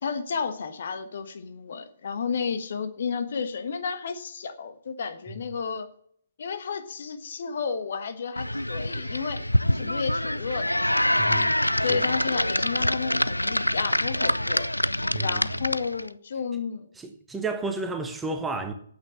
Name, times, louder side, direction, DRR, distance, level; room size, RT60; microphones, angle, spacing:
voice 1, 0.0-5.9 6.4-9.5 9.7-11.4 11.8-14.7 15.2-16.9, left 5 dB, 50° left, 1.3 m, -32 dB
sound 1, 8.4-16.1, left 1 dB, 85° left, 0.4 m, -25 dB
voice 2, 11.2-11.6 11.9-12.0 15.1-15.4 17.0-18.7, right 3 dB, 10° right, 1.1 m, -31 dB
9.1 x 8.1 x 8.5 m
figure-of-eight pair, 130°, 0 cm